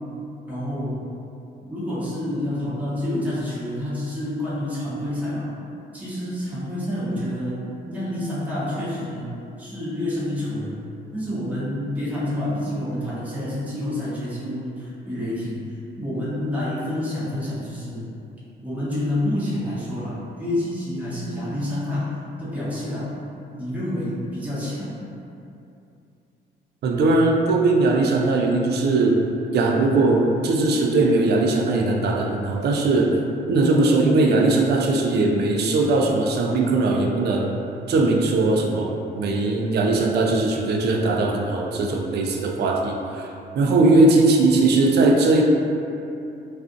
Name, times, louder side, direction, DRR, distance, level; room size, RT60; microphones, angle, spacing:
voice 1, 0.5-1.0 1.7-5.5 5.9-7.6 7.9-10.8 11.1-15.6 16.0-18.1 18.6-22.1 22.4-23.1 23.6-25.0 43.7-43.9, left 1 dB, 5° right, -10 dB, 0.8 m, -28 dB
voice 2, 26.8-29.2 29.5-33.2 33.5-37.5 37.9-43.3 43.6-45.4, right 2 dB, 55° right, 1 dB, 0.4 m, -19 dB
2.4 x 2.4 x 2.5 m, 2.7 s
cardioid pair, 90°, 20 cm